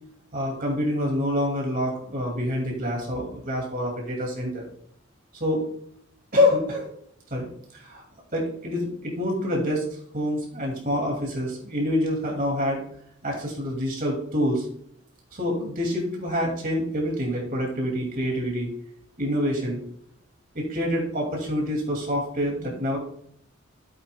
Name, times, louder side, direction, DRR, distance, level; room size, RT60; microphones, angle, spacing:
voice 1, 0.3-4.7 5.4-5.6 6.3-6.8 7.3-7.5 7.7-8.0 8.3-9.8 10.1-12.8 13.2-14.6 15.3-18.7 19.2-19.8 20.5-23.0, left 1 dB, 40° right, 0 dB, 2.4 m, -26 dB
13.0 x 8.6 x 2.3 m, 0.65 s
head